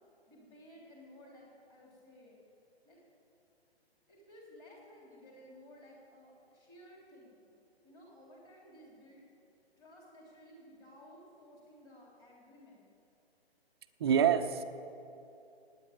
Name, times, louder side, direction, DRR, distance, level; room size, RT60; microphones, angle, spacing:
voice 1, 0.3-2.4 2.8-3.0 4.1-7.5 7.8-9.2 9.8-12.9, equal, 15° left, -3 dB, 3.6 m, -56 dB
voice 2, 14.0-14.6, right 8 dB, 25° right, 7 dB, 0.6 m, -26 dB
16.0 x 9.7 x 8.8 m, 2.7 s
figure-of-eight pair, 135°, 32 cm